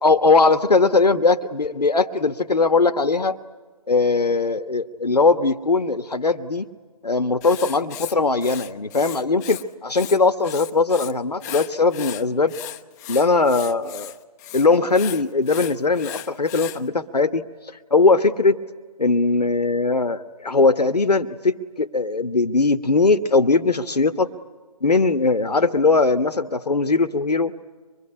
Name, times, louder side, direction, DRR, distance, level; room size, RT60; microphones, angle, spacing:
voice 1, 0.0-3.4 3.9-6.7 7.0-12.5 13.1-14.1 14.5-17.4 17.9-18.6 19.0-24.3 24.8-27.5, left 3 dB, 85° left, 10 dB, 1.2 m, -20 dB
Writing, 7.4-9.6 9.9-11.1 11.4-16.8, left 12 dB, 25° left, 0.9 m, -36 dB
25.0 x 22.0 x 9.9 m, 1.4 s
figure-of-eight pair, 140°, 20 cm